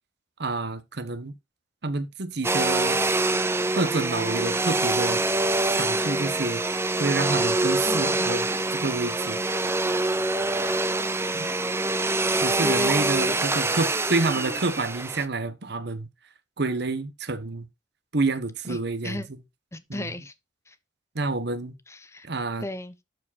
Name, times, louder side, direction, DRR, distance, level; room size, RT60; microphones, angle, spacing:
voice 1, 0.4-1.3 1.8-3.0 3.7-5.2 5.7-6.6 7.0-9.4 11.3-11.5 12.4-16.1 16.6-17.7 18.1-19.2 19.9-20.1 21.1-21.7 22.2-22.7, right 3 dB, 65° right, 1.2 m, -28 dB
Domestic sounds home sounds, 2.4-15.3, right 2 dB, 15° right, 0.6 m, -25 dB
voice 2, 7.8-8.2 12.6-12.9 13.2-13.4 18.7-19.3 19.7-20.3 20.7-20.8 21.9-22.3 22.6-23.0, left 1 dB, 15° left, 0.9 m, -36 dB
12.0 x 5.0 x 4.2 m
head